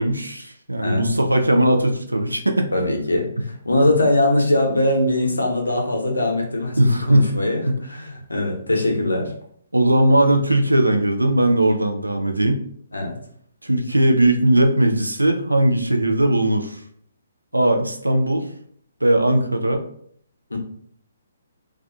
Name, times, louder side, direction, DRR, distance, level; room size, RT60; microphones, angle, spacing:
voice 1, 0.0-2.7 6.8-7.3 7.7-7.8 9.7-12.6 13.6-16.8 17.5-18.5 19.0-19.8, right 1 dB, 85° right, 5 dB, 0.3 m, -19 dB
voice 2, 2.7-9.3 12.9-13.2 20.5-20.6, left 1 dB, 80° left, 1 dB, 0.6 m, -21 dB
2.3 x 2.3 x 2.4 m, 0.64 s
figure-of-eight pair, 135°, 0 cm